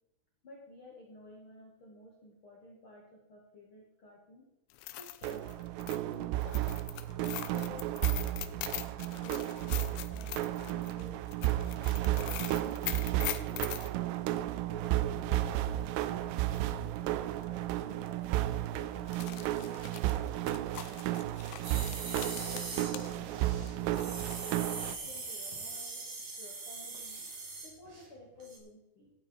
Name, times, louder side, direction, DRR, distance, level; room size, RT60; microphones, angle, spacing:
voice 1, 0.4-4.4 4.9-5.5 6.1-6.7 7.1-8.3 9.2-11.3 12.0-14.2 14.6-16.4 17.2-19.7 20.1-21.6 22.2-26.0 26.4-27.2 27.6-29.1, left 2 dB, 50° left, -2 dB, 1.5 m, -53 dB
sound 1, 4.7-13.9 16.1-16.2 16.5-16.6 17.4-17.6 18.0-18.1 19.0-23.2 23.4-24.5, left 15 dB, 85° left, 3.4 m, -42 dB
sound 2, 5.2-24.9, right 14 dB, 85° right, 3.1 m, -33 dB
sound 3, 21.6-28.1 28.4-28.6, right 3 dB, 40° right, 2.7 m, -42 dB
14.5 x 9.1 x 4.6 m, 0.89 s
omnidirectional pair, 6.0 m